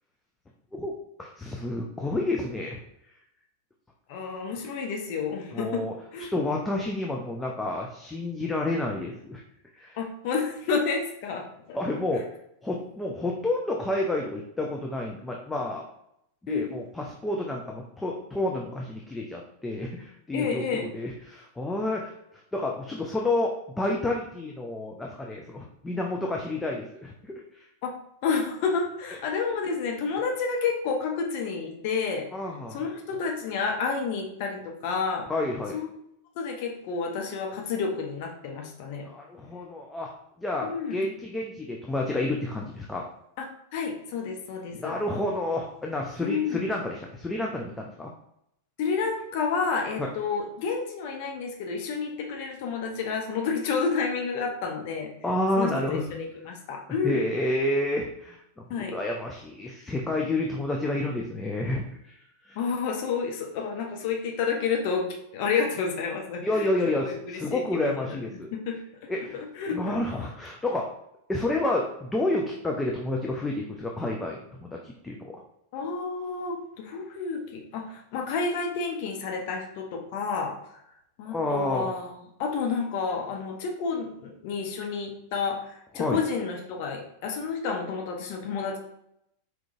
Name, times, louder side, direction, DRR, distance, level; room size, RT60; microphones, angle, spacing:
voice 1, 1.2-2.8 5.5-5.9 6.3-9.4 9.7-10.0 11.7-12.2 12.6-15.9 16.4-22.1 22.5-27.7 32.3-32.8 35.3-35.8 39.0-40.1 40.4-43.1 44.7-48.1 50.0-50.1 55.2-56.2 57.0-62.2 62.4-62.6 66.4-68.5 69.1-69.4 69.7-70.9 71.3-75.4 81.3-81.9 85.9-86.2, left 2 dB, 10° left, 0 dB, 0.5 m, -30 dB
voice 2, 4.1-5.8 6.1-6.3 10.0-11.8 12.1-12.2 16.5-16.8 20.3-20.9 27.8-27.9 28.2-32.3 32.7-35.3 35.7-35.9 36.4-39.1 40.6-41.0 43.4-43.5 43.7-45.0 46.2-46.6 48.8-55.1 55.6-57.2 58.7-59.0 62.6-65.1 65.3-68.2 68.5-70.0 75.7-80.5 81.2-82.1 82.4-88.8, left 5 dB, 45° left, 2 dB, 0.7 m, -30 dB
4.5 x 3.7 x 2.5 m, 0.78 s
figure-of-eight pair, 90°, 0 cm